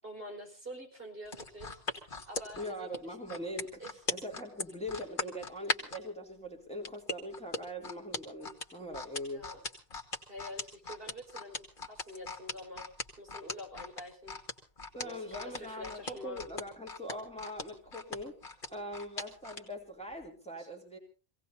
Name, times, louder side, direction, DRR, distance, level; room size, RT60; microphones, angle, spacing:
voice 1, 0.0-3.2 3.8-3.9 9.3-9.6 10.3-12.9 13.2-14.4 15.0-16.4 20.6-20.7, equal, 55° right, 1 dB, 5.1 m, -47 dB
sound 1, 1.3-6.0 6.9-19.7 20.1-20.3, left 3 dB, 50° left, 2.2 m, -38 dB
voice 2, 2.6-9.5 14.9-18.4 18.7-21.0, equal, 5° left, 1 dB, 2.7 m, -42 dB
26.0 x 17.5 x 2.7 m, 0.37 s
omnidirectional pair, 1.1 m